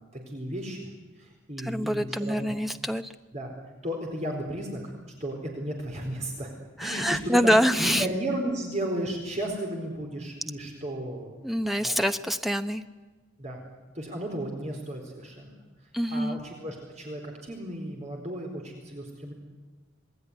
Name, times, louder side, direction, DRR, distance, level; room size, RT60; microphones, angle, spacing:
voice 1, 0.1-0.9 1.2-2.6 3.3-3.5 3.8-4.9 5.2-6.5 6.8-11.3 11.8-12.0 13.4-13.6 13.9-15.5 16.1-19.3, right 1 dB, 35° right, 1 dB, 4.3 m, -34 dB
voice 2, 1.6-3.1 6.8-8.1 11.4-12.8 15.9-16.4, equal, ahead, 8 dB, 0.9 m, -25 dB
27.0 x 20.0 x 10.0 m, 1.3 s
head